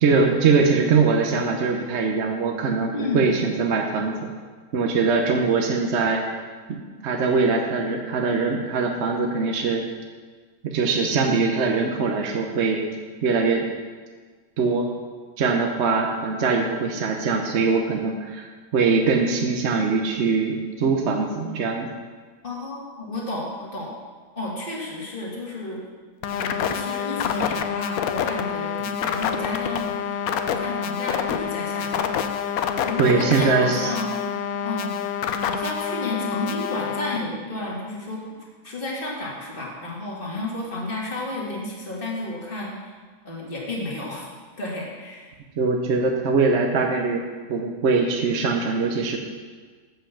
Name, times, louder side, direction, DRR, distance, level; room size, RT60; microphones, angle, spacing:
voice 1, 0.0-4.3 4.7-6.2 6.7-9.9 10.6-12.8 13.2-13.6 14.6-14.9 15.4-21.9 33.0-33.9 45.6-47.2 47.5-49.2, right 4 dB, 55° right, 2 dB, 1.0 m, -22 dB
voice 2, 2.9-3.3 22.4-23.9 24.4-25.8 26.3-32.2 32.8-34.2 34.6-34.9 35.5-38.2 38.6-42.7 43.2-44.3 44.6-45.3, left 2 dB, 40° left, -4 dB, 2.0 m, -32 dB
sound 1, 26.2-37.2, left 8 dB, 90° left, 1.1 m, -27 dB
7.5 x 5.8 x 7.0 m, 1.5 s
omnidirectional pair, 1.5 m